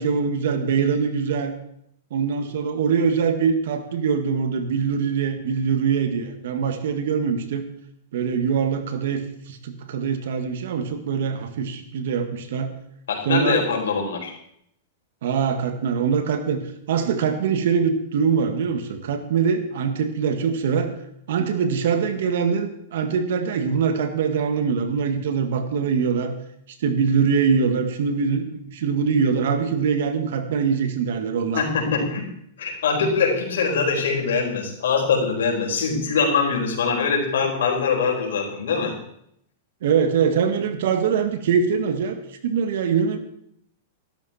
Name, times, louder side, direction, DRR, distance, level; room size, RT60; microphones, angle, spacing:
voice 1, 0.0-1.5 2.1-7.6 8.1-9.2 9.5-12.7 13.3-13.6 15.2-16.6 16.9-20.9 21.3-26.3 26.8-31.7 39.8-42.2 42.4-43.2, right 6 dB, 70° right, 8 dB, 1.8 m, -23 dB
voice 2, 13.1-14.3 31.5-32.2 32.6-38.9, left 5 dB, 85° left, 0 dB, 4.3 m, -23 dB
13.0 x 12.5 x 4.4 m, 0.71 s
supercardioid pair, 145°, 0 cm